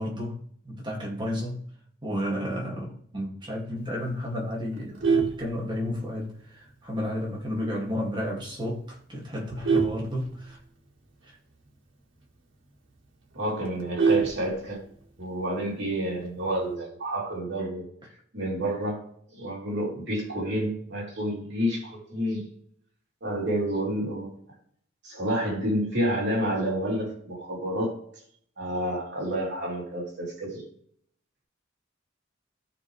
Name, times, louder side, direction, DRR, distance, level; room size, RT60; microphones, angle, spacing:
voice 1, 0.0-1.6 2.0-10.6 11.2-11.4, left 1 dB, 25° right, 2.2 m, -32 dB
Vehicle horn car horn honking, 4.7-6.2 6.7-6.9 7.2-7.3 7.8-7.9 8.2-8.5 9.1-10.9 11.3-11.4 11.7-11.8 12.2-12.3 12.6-12.7 13.0-15.0 16.2-16.6, right 5 dB, 80° right, 1.9 m, -27 dB
voice 2, 13.3-14.8 15.2-17.9 18.3-19.0 19.3-22.5 23.2-24.3 25.0-27.9 28.6-30.6, right 1 dB, 60° right, 3.4 m, -29 dB
15.0 x 5.1 x 3.2 m
head